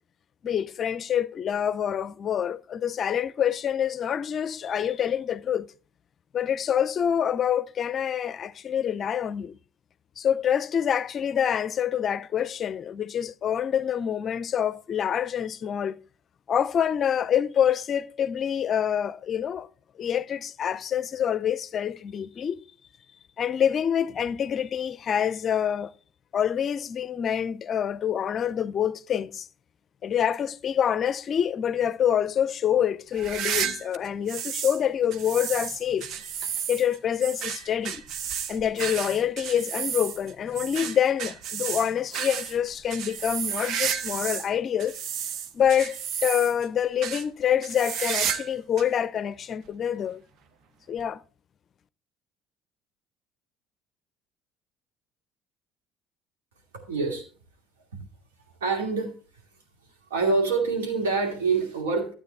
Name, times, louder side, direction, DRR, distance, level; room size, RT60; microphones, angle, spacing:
voice 1, 0.4-5.7 6.3-9.6 10.2-16.0 16.5-19.7 20.0-22.6 23.4-25.9 26.3-29.5 30.0-36.1 36.7-38.0 38.5-45.0 45.5-46.0 46.2-50.2 50.9-51.2, left 9 dB, 45° left, 0.5 m, -26 dB
sound 1, 33.1-34.8 35.1-44.5 44.8-46.7 47.0-47.2 47.6-48.5 48.8-48.9 49.7-49.8 51.0-51.1, right 8 dB, 60° right, 0.7 m, -32 dB
voice 2, 56.9-57.2 57.9-58.0 58.6-59.1 60.1-62.1, right 4 dB, 85° right, 2.5 m, -25 dB
12.5 x 8.4 x 3.3 m
hypercardioid pair, 60°, 0 cm